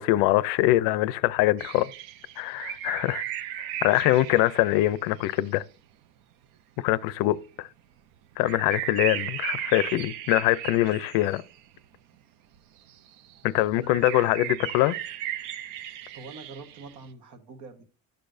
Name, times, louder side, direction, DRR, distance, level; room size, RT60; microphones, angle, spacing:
voice 1, 0.0-1.9 2.4-3.2 3.8-5.6 6.8-7.7 8.4-11.4 13.4-15.0, left 16 dB, 80° left, 0.5 m, -23 dB
sound 1, 1.6-5.5 7.3-7.4 8.4-11.8 12.9-13.4 13.8-16.9, right 12 dB, 75° right, 0.7 m, -36 dB
voice 2, 16.1-17.8, right 4 dB, 55° right, 1.4 m, -45 dB
12.0 x 6.7 x 2.6 m
cardioid pair, 180°, 34 cm